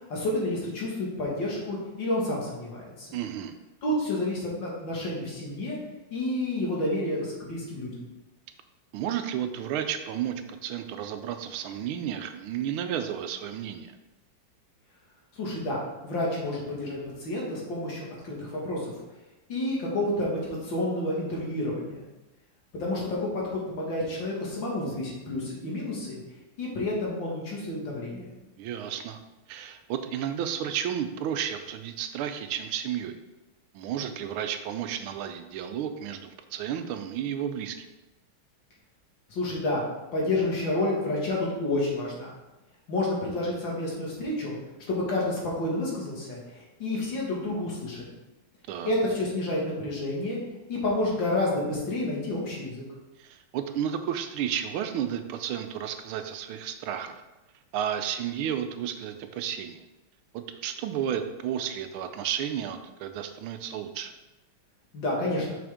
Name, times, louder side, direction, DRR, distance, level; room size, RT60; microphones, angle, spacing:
voice 1, 0.1-3.1 3.8-5.8 6.1-7.9 15.4-18.9 19.5-22.0 22.7-26.2 26.6-28.3 39.3-39.8 40.1-42.3 42.9-44.6 44.9-48.1 48.8-50.4 50.7-52.8 64.9-65.4, left 1 dB, 60° left, -4 dB, 2.3 m, -29 dB
voice 2, 3.1-3.5 8.9-13.9 28.6-29.2 29.5-33.1 33.7-37.9 48.7-48.9 53.2-57.2 57.7-59.8 60.3-64.1, right 9 dB, 80° right, 8 dB, 1.4 m, -32 dB
6.1 x 5.9 x 3.6 m, 1.0 s
omnidirectional pair, 2.3 m